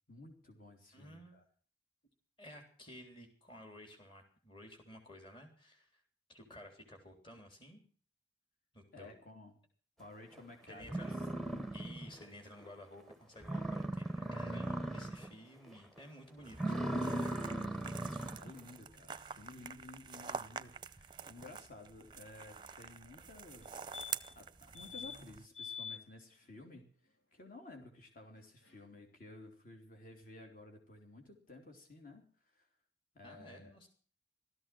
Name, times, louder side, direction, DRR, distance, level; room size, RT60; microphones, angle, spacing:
voice 1, 0.1-1.4 8.9-9.6 10.0-11.0 17.9-23.7 24.3-26.9 27.3-32.2 32.5-32.7 33.1-33.7, left 2 dB, 50° left, 4 dB, 3.2 m, -54 dB
voice 2, 0.9-1.4 2.4-6.0 6.3-7.8 8.7-9.1 10.7-11.3 11.7-16.8 33.2-33.9, equal, 30° left, 4 dB, 3.6 m, -53 dB
sound 1, 10.4-10.5 10.8-12.2 12.6-12.7 13.1-13.2 13.4-15.3 15.7-16.0 16.5-18.5, right 1 dB, ahead, 0.9 m, -38 dB
sound 2, 16.4-25.5, right 6 dB, 25° right, 0.7 m, -47 dB
sound 3, 23.6-23.7 23.9-24.4 24.7-25.2 25.5-26.0 28.4-28.5 28.7-28.8, left 7 dB, 85° left, 2.4 m, -45 dB
16.5 x 14.0 x 6.0 m, 0.43 s
head